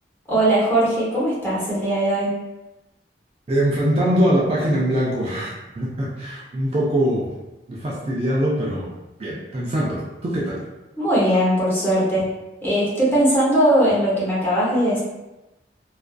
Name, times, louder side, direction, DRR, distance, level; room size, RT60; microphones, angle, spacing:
voice 1, 0.3-2.3 11.0-12.3 12.6-15.0, right 1 dB, 10° left, -8 dB, 0.7 m, -19 dB
voice 2, 3.5-7.3 7.7-8.9 9.2-10.6, equal, 35° right, -5 dB, 0.3 m, -22 dB
2.4 x 2.3 x 2.2 m, 1.0 s
head